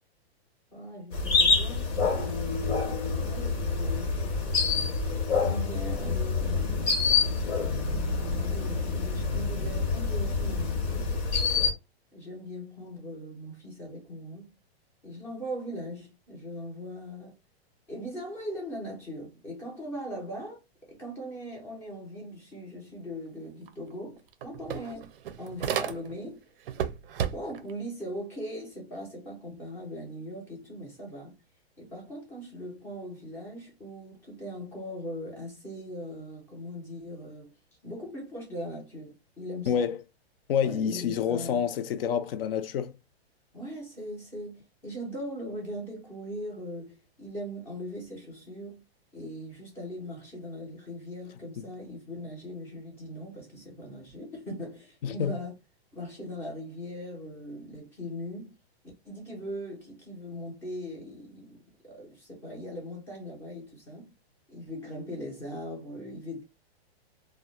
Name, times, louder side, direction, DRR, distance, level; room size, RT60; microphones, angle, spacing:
voice 1, 0.7-2.6 3.1-4.2 5.2-6.9 8.4-11.2 12.1-14.5 15.0-17.4 17.9-20.6 20.9-25.1 25.4-26.5 27.3-31.4 31.8-37.5 37.8-39.9 40.6-41.6 43.5-48.8 49.1-55.5 55.9-58.5 59.0-64.1 64.5-66.4, equal, 10° left, 0.4 m, -40 dB
sound 1, 1.1-11.7, left 4 dB, 80° left, 1.1 m, -27 dB
sound 2, 23.7-23.8 24.1-26.3 26.7-27.7, right 9 dB, 60° right, 0.4 m, -33 dB
voice 2, 39.7-40.0 40.5-43.0 51.6-51.7 55.0-55.4, left 8 dB, 60° left, 0.5 m, -28 dB
2.2 x 2.0 x 2.9 m
hypercardioid pair, 160°, 32 cm